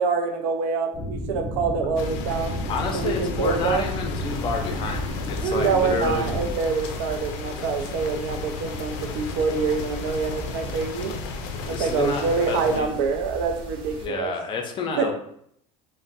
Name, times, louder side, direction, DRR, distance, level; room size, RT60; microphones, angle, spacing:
voice 1, 0.0-2.6 2.9-3.8 5.5-11.1 11.6-14.3 15.0-15.1, right 5 dB, 80° right, 5 dB, 0.5 m, -26 dB
sound 1, 0.9-6.5, equal, ahead, 0.8 m, -32 dB
sound 2, 2.0-12.8, left 5 dB, 85° left, 0.4 m, -35 dB
voice 2, 2.7-6.5 11.7-12.9 14.0-15.1, left 4 dB, 30° left, 3 dB, 0.5 m, -29 dB
sound 3, 4.2-14.1, right 3 dB, 35° right, 0.6 m, -37 dB
2.5 x 2.1 x 3.8 m, 0.71 s
cardioid pair, 145°, 15 cm